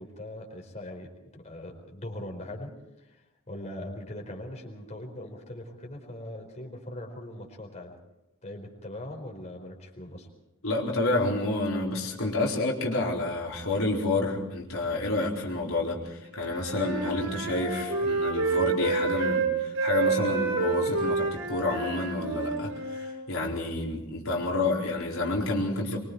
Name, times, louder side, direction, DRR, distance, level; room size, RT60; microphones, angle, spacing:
voice 1, 0.0-2.7 3.0-7.9 8.4-10.3, left 1 dB, 35° left, 1 dB, 4.5 m, -41 dB
voice 2, 10.6-26.0, left 2 dB, 70° left, -2 dB, 4.3 m, -29 dB
Wind instrument woodwind instrument, 16.3-23.2, right 4 dB, 65° right, 6.1 m, -28 dB
24.5 x 23.5 x 4.7 m, 0.92 s
head